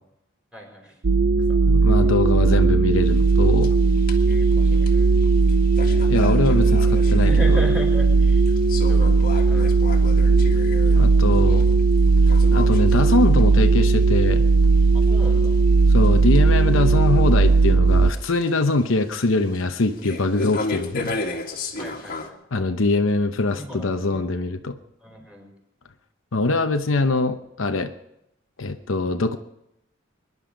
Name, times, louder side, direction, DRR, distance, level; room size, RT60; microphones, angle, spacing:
voice 1, 0.5-1.0 1.5-1.6 4.3-5.2 7.2-8.4 8.9-9.8 14.9-15.6 21.8-22.6 23.6-24.3 25.0-25.5, equal, 5° right, 0 dB, 5.0 m, -36 dB
sound 1, 1.0-18.1, right 4 dB, 70° right, 0.7 m, -17 dB
voice 2, 1.7-3.8 6.1-7.6 10.9-11.6 12.5-14.4 15.9-21.2 22.5-24.8 26.3-27.9 28.6-29.4, left 2 dB, 70° left, 7 dB, 0.9 m, -23 dB
sound 2, 3.0-22.3, left 2 dB, 45° left, 1.9 m, -36 dB
24.5 x 11.0 x 5.2 m, 0.83 s
head